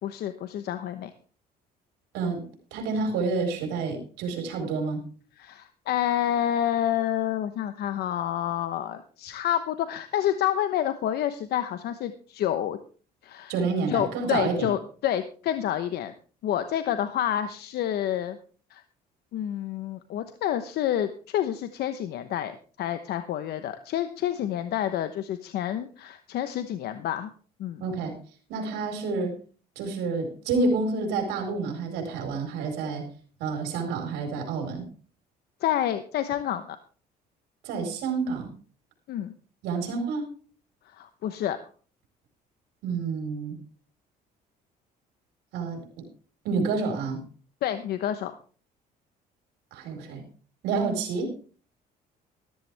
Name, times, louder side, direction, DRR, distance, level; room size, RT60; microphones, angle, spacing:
voice 1, 0.0-1.1 5.4-12.8 13.2-13.5 13.9-16.1 16.4-18.4 18.7-18.8 19.3-27.3 27.6-27.9 35.6-36.8 39.1-39.3 41.0-41.6 47.6-48.3, left 11 dB, 70° left, 10 dB, 1.0 m, -28 dB
voice 2, 2.7-5.0 13.5-14.7 27.8-28.2 28.5-29.3 29.8-33.0 33.4-34.8 37.6-38.5 39.6-40.3 42.8-43.6 45.5-46.0 46.4-47.2 49.7-50.2 50.6-51.3, right 4 dB, 85° right, 4 dB, 4.5 m, -29 dB
14.0 x 13.5 x 3.4 m, 0.40 s
cardioid pair, 110°, 17 cm